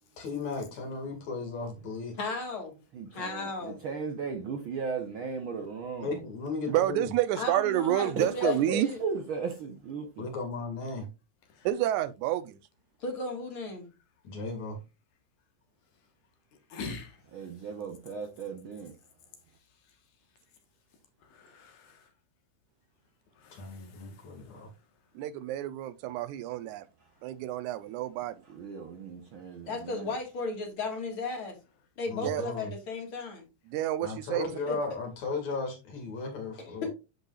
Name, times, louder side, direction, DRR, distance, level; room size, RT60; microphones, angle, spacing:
voice 1, 0.2-2.1 6.0-7.1 10.2-11.1 14.2-14.8 23.5-24.7 32.1-32.7 34.0-36.9, left 3 dB, 65° left, 3.4 m, -36 dB
voice 2, 2.2-2.8 3.1-3.8 7.3-9.0 13.0-13.9 29.7-31.6 32.0-33.4 34.7-34.8 36.8-36.9, left 3 dB, 50° left, 2.4 m, -35 dB
voice 3, 2.9-6.1 8.2-10.3 17.3-18.9 28.5-30.1, right 4 dB, 65° right, 1.3 m, -36 dB
voice 4, 6.7-8.9 11.7-12.6 25.2-26.8 27.2-28.4 32.2-32.4 33.7-34.5, right 13 dB, 85° right, 2.0 m, -29 dB
voice 5, 16.7-17.2 21.2-22.1 23.4-24.6, left 4 dB, 90° left, 2.9 m, -45 dB
10.5 x 5.4 x 2.4 m
omnidirectional pair, 3.4 m